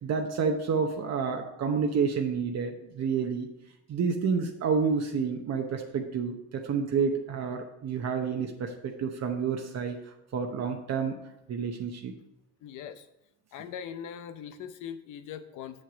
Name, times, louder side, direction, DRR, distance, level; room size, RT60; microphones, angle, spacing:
voice 1, 0.0-3.5 3.9-10.0 10.3-11.2 11.5-12.1, right 5 dB, 60° right, 3 dB, 0.9 m, -29 dB
voice 2, 12.6-13.1 13.5-15.8, left 8 dB, 90° left, 10 dB, 0.7 m, -41 dB
6.6 x 6.5 x 5.0 m, 0.83 s
cardioid pair, 90°, 30 cm